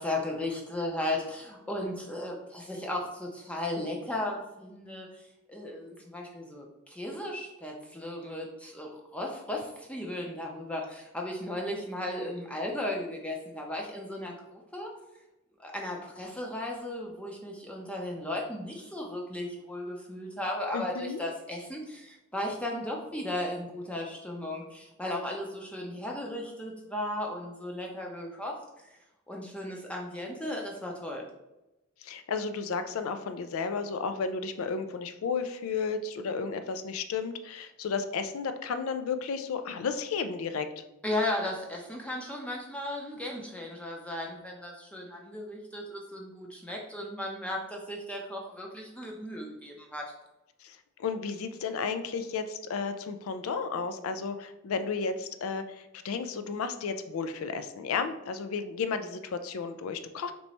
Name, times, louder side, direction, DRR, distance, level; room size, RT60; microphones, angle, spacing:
voice 1, 0.0-5.1 5.5-14.9 15.6-28.6 29.3-31.3 41.0-50.1, left 1 dB, 5° left, -1 dB, 0.5 m, -35 dB
voice 2, 20.7-21.2 32.0-40.8 50.6-60.3, left 5 dB, 80° left, 9 dB, 0.4 m, -33 dB
3.2 x 3.0 x 4.0 m, 0.96 s
head